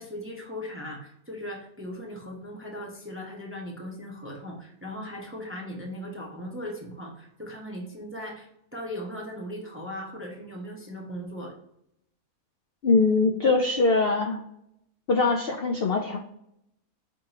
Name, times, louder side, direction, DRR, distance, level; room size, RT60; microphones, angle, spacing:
voice 1, 0.0-11.6, equal, 15° right, -1 dB, 0.6 m, -38 dB
voice 2, 12.8-14.4 15.1-16.2, left 3 dB, 65° left, 2 dB, 0.6 m, -22 dB
4.9 x 3.6 x 2.9 m, 0.77 s
omnidirectional pair, 1.5 m